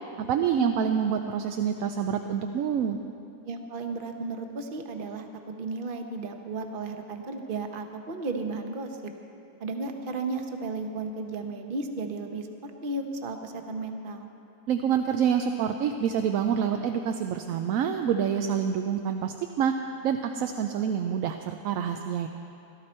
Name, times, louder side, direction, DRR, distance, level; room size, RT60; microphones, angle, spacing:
voice 1, 0.2-3.0 14.7-19.7 20.0-22.3, right 8 dB, 75° right, 6 dB, 1.0 m, -27 dB
voice 2, 3.4-9.1 9.6-14.3, right 3 dB, 40° right, 5 dB, 1.0 m, -34 dB
17.0 x 13.0 x 4.3 m, 2.6 s
omnidirectional pair, 1.5 m